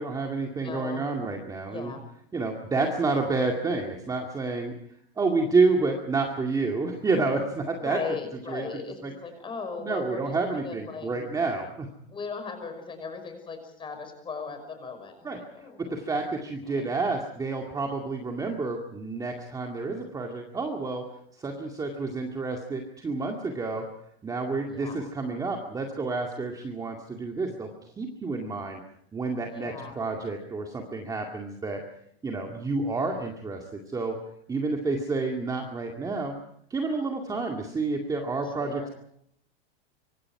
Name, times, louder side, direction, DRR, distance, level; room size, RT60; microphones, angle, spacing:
voice 1, 0.0-1.9 2.3-4.7 5.2-8.0 8.5-8.6 9.0-9.1 9.8-11.9 15.2-21.0 21.4-23.8 24.2-27.7 28.0-28.8 29.1-31.8 32.2-34.2 34.5-36.3 36.7-38.9, right 3 dB, 10° right, 2 dB, 2.2 m, -29 dB
voice 2, 0.6-1.1 1.6-2.0 7.8-11.1 12.1-16.0 16.7-16.9 24.6-25.0 29.4-30.0 38.4-38.9, left 5 dB, 15° left, 7 dB, 5.7 m, -38 dB
25.5 x 25.0 x 4.8 m, 0.68 s
supercardioid pair, 160°, 32 cm